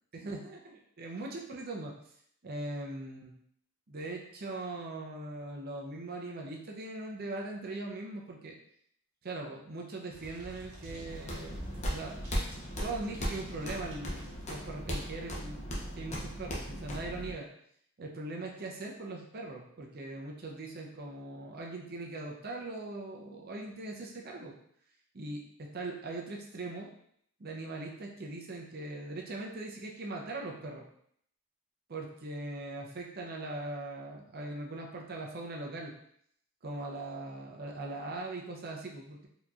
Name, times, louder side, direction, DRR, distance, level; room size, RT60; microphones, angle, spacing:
voice 1, 0.1-1.9 2.4-3.3 3.9-8.5 9.2-11.6 11.9-12.2 12.8-15.7 16.0-17.5 18.0-24.5 25.1-26.9 27.4-30.8 31.9-35.9 36.6-39.3, right 2 dB, 45° right, 0 dB, 0.6 m, -40 dB
sound 1, 10.1-14.6, equal, 85° right, 1.2 m, -48 dB
sound 2, 11.1-17.3, equal, 30° left, 0.6 m, -37 dB
4.2 x 2.8 x 2.4 m, 0.68 s
head